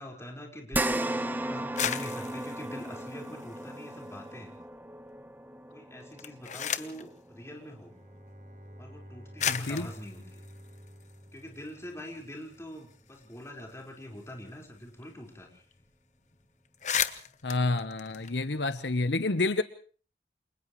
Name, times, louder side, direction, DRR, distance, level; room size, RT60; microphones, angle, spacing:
voice 1, 0.0-4.6 5.7-8.0 8.8-10.5 11.3-15.7, left 1 dB, 15° left, 1 dB, 5.1 m, -44 dB
sound 1, 0.7-9.3 9.8-9.9 11.3-11.4, right 1 dB, 10° right, 1.1 m, -36 dB
sound 2, 1.6-4.2 4.5-5.2 6.0-7.1 8.1-8.2 9.0-9.1 9.4-11.7 12.1-12.2 12.4-15.0 15.3-15.4 15.7-16.0 16.3-16.4 16.6-18.9, left 8 dB, 40° left, 1.1 m, -36 dB
Bowed string instrument, 7.9-12.5, equal, 45° right, 4.0 m, -51 dB
voice 2, 9.5-9.9 17.4-19.6, left 2 dB, 75° left, 11 dB, 1.1 m, -29 dB
29.5 x 27.5 x 3.2 m, 0.42 s
head